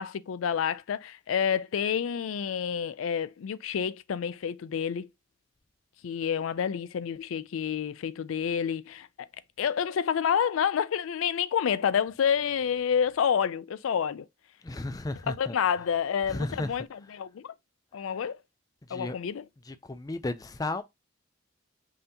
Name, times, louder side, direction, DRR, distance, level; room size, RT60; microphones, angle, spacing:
voice 1, 0.0-5.1 6.0-9.3 9.6-14.3 15.3-17.5 17.9-18.4 18.9-19.4, left 7 dB, 85° left, 0.4 m, -29 dB
voice 2, 14.6-15.6 16.3-16.7 18.0-18.3 18.9-19.2 19.6-20.8, left 2 dB, 20° left, 0.4 m, -34 dB
5.5 x 2.8 x 2.7 m
head